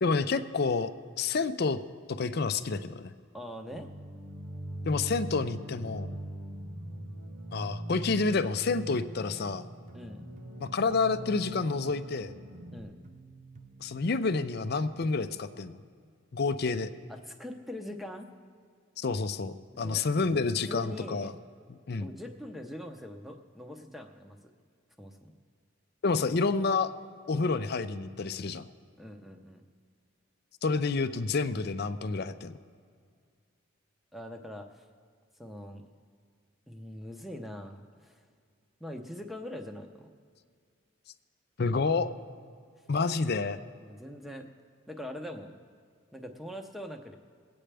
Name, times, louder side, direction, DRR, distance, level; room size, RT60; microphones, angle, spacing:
voice 1, 0.0-0.9 1.2-1.8 2.1-3.1 4.8-6.1 7.5-9.7 10.6-12.3 13.8-15.8 16.3-16.9 19.0-21.3 21.7-22.1 26.0-26.9 27.3-28.7 30.6-32.6 41.6-42.1 42.9-43.6, left 4 dB, 50° left, 11 dB, 0.5 m, -29 dB
voice 2, 3.3-3.9 9.9-10.3 12.7-13.0 17.1-18.3 19.7-20.1 20.7-21.3 22.0-24.4 25.0-25.3 29.0-29.6 34.1-34.8 35.4-35.8 36.7-38.2 38.8-40.2 43.8-44.5 44.9-45.5 46.1-47.1, left 1 dB, ahead, 4 dB, 0.7 m, -42 dB
sound 1, 3.7-12.8, right 1 dB, 50° right, 1.4 m, -41 dB
sound 2, 9.9-15.2, right 3 dB, 35° right, 0.6 m, -52 dB
22.0 x 8.7 x 3.4 m, 2.1 s
head